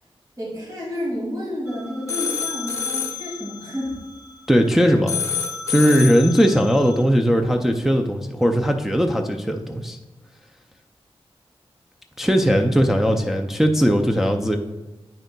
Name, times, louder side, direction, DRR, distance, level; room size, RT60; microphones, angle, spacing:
voice 1, 0.4-4.0, left 1 dB, 35° right, -7 dB, 2.1 m, -30 dB
sound 1, 1.7-4.7 5.1-7.0, left 6 dB, 30° left, 0.8 m, -29 dB
voice 2, 4.5-5.1 5.7-10.0 12.2-14.6, equal, 5° right, 2 dB, 0.3 m, -18 dB
8.9 x 6.3 x 2.2 m, 1.1 s
wide cardioid pair, 160°, 10 cm